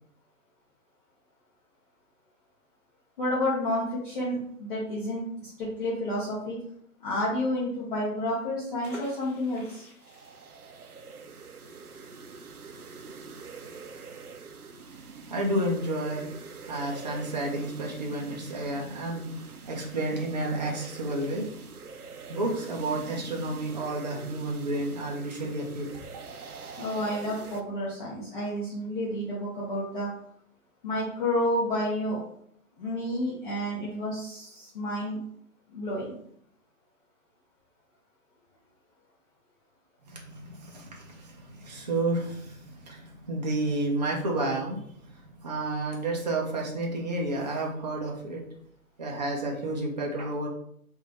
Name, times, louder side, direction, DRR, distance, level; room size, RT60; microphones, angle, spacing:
voice 1, 3.2-6.6 7.0-9.9 26.8-30.1 30.8-32.2 32.8-35.2 35.7-36.1, left 1 dB, 35° left, -7 dB, 1.0 m, -30 dB
sound 1, 8.8-14.4 14.7-14.8 15.1-15.4, left 2 dB, 5° left, 1.0 m, -50 dB
sound 2, 10.0-27.6, right 4 dB, 80° right, 0.6 m, -45 dB
voice 2, 15.3-16.3 16.6-21.5 22.3-25.9 40.1-44.8 45.1-48.4 49.0-50.5, right 2 dB, 30° right, -1 dB, 0.5 m, -31 dB
3.3 x 2.6 x 3.5 m, 0.67 s
figure-of-eight pair, 135°, 44 cm